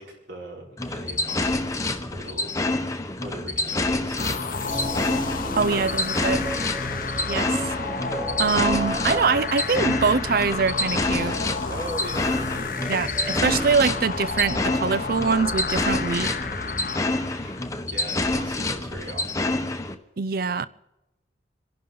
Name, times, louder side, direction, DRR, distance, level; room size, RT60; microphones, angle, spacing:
voice 1, 0.0-2.5 2.9-5.2 5.7-7.0 11.6-13.2 16.2-16.5 17.4-19.6, right 1 dB, 75° right, 4.8 m, -40 dB
sound 1, 0.8-19.9, left 2 dB, 20° left, 0.9 m, -28 dB
sound 2, 4.2-17.7, left 4 dB, 50° left, 0.8 m, -32 dB
sound 3, 4.7-13.7, right 2 dB, 10° right, 0.6 m, -37 dB
voice 2, 5.6-6.4 7.3-7.6 8.4-11.4 12.9-16.3 20.2-20.7, right 5 dB, 55° right, 0.5 m, -23 dB
27.5 x 11.5 x 3.9 m
head